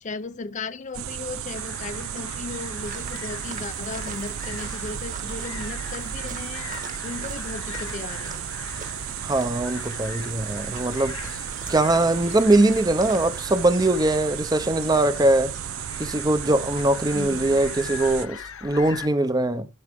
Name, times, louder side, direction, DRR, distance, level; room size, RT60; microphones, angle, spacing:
voice 1, 0.0-6.7 7.0-8.5 17.1-17.6, left 3 dB, 35° left, 0.5 m, -36 dB
sound 1, 0.9-18.3, right 10 dB, 80° right, 0.4 m, -34 dB
sound 2, 1.5-19.1, left 7 dB, 75° left, 0.8 m, -41 dB
sound 3, 2.8-13.7, right 4 dB, 40° right, 1.5 m, -44 dB
voice 2, 9.2-11.2 11.7-15.5 16.0-19.7, right 2 dB, 20° right, 0.7 m, -21 dB
12.0 x 4.8 x 3.5 m
head